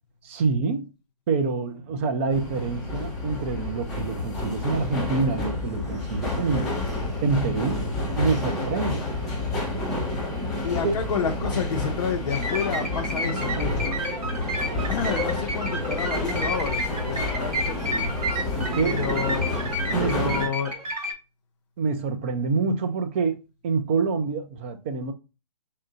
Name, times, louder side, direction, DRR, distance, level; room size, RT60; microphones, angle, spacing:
voice 1, 0.2-0.9 1.3-6.7 7.2-7.8 8.2-9.1 10.8-11.0 18.6-19.0 19.9-20.4 21.8-23.4 23.6-25.1, right 4 dB, 20° right, 0.4 m, -26 dB
sound 1, 2.3-20.5, left 2 dB, ahead, 1.4 m, -29 dB
voice 2, 10.6-13.9 14.9-18.1 18.8-19.6 20.0-20.7, left 6 dB, 50° left, 0.6 m, -30 dB
sound 2, 12.3-21.1, right 1 dB, 65° right, 2.2 m, -31 dB
5.3 x 2.6 x 3.8 m
hypercardioid pair, 150°, 21 cm